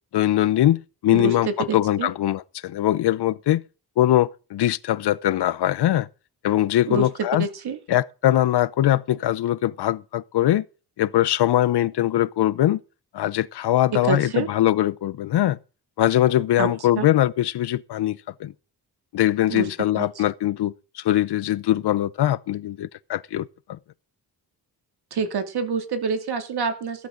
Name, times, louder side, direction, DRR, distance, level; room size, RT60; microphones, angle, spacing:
voice 1, 0.1-1.5 1.7-3.6 4.0-6.1 6.4-7.5 7.9-10.6 11.0-12.8 13.1-15.6 16.0-18.5 19.1-23.8, left 13 dB, 90° left, 0.8 m, -22 dB
voice 2, 1.1-2.1 6.9-7.8 14.0-14.5 16.6-16.7 17.0-17.1 19.5-19.7 19.9-20.2 25.1-27.1, right 5 dB, 75° right, 2.7 m, -27 dB
15.0 x 13.0 x 3.9 m
wide cardioid pair, 160°, 39 cm